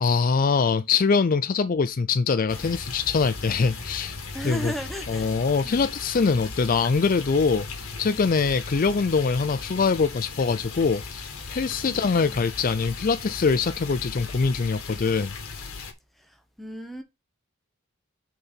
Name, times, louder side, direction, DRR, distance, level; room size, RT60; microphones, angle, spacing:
voice 1, 0.0-4.2 4.4-4.7 5.1-15.3, left 5 dB, 40° left, 0.4 m, -23 dB
sound 1, 2.5-15.9, left 4 dB, 80° left, 2.0 m, -37 dB
voice 2, 4.3-5.3 5.6-5.9 11.8-12.4 16.2-17.0, equal, ahead, 1.1 m, -36 dB
6.5 x 4.6 x 5.6 m
head